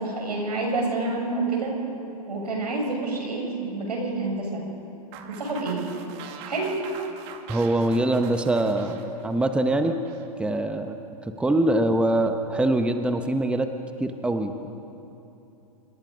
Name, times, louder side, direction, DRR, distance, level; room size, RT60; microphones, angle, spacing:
voice 1, 0.0-1.7 2.3-4.6 5.3-5.8 6.5-6.8, right 3 dB, 90° right, 0 dB, 6.7 m, -28 dB
sound 1, 5.1-10.3, right 8 dB, 45° right, 2.2 m, -43 dB
voice 2, 7.5-10.0 10.4-11.0 11.4-13.7 14.0-14.7, right 1 dB, 5° right, 7 dB, 1.0 m, -23 dB
27.0 x 23.5 x 5.3 m, 2.9 s
hypercardioid pair, 120°, 20 cm